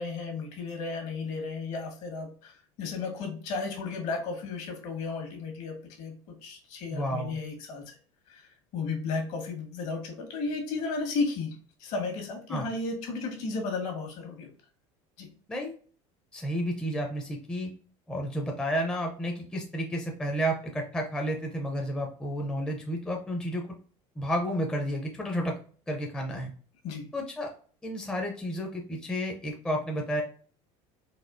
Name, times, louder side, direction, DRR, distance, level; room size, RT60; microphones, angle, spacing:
voice 1, 0.0-6.1 6.4-7.9 8.3-14.5 15.2-15.3 26.8-27.1, left 4 dB, 60° left, 2 dB, 1.3 m, -34 dB
voice 2, 6.9-7.3 12.5-12.7 15.5-15.7 16.3-17.7 18.1-23.6 24.2-25.5 25.9-26.5 27.1-27.5 27.8-30.2, equal, 5° left, 1 dB, 0.5 m, -31 dB
4.2 x 2.7 x 2.5 m, 0.43 s
cardioid pair, 150°, 13 cm